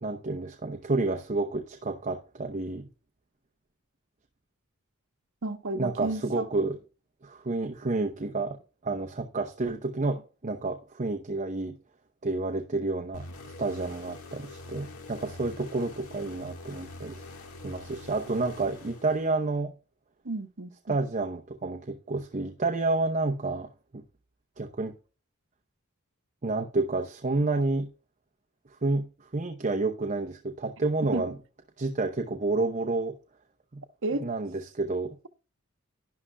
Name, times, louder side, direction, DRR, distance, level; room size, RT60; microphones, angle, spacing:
voice 1, 0.0-2.9 5.7-6.8 7.2-11.8 12.2-17.2 17.6-19.7 20.9-24.0 24.6-24.9 26.4-27.9 28.8-29.1 29.3-31.3 31.8-33.2 33.7-33.8 34.2-35.2, right 3 dB, 35° right, 0.8 m, -30 dB
voice 2, 5.4-6.5 20.2-21.0 31.1-31.2 34.0-34.3, right 2 dB, 65° right, 1.1 m, -32 dB
sound 1, 13.1-19.6, left 2 dB, 80° left, 1.8 m, -45 dB
11.5 x 11.0 x 2.3 m
head